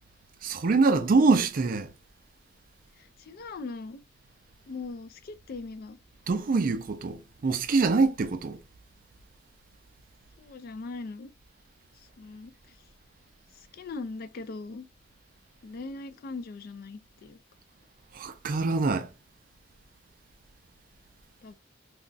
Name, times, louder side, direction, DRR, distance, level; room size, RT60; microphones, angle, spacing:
voice 1, 0.4-1.9 6.3-8.6 18.1-19.1, right 4 dB, 45° right, 0.4 m, -24 dB
voice 2, 3.0-4.0 4.7-6.0 10.4-11.3 12.2-12.5 13.6-14.9 15.6-17.4 21.4-21.5, left 3 dB, 50° left, 0.3 m, -40 dB
2.3 x 2.2 x 3.8 m
head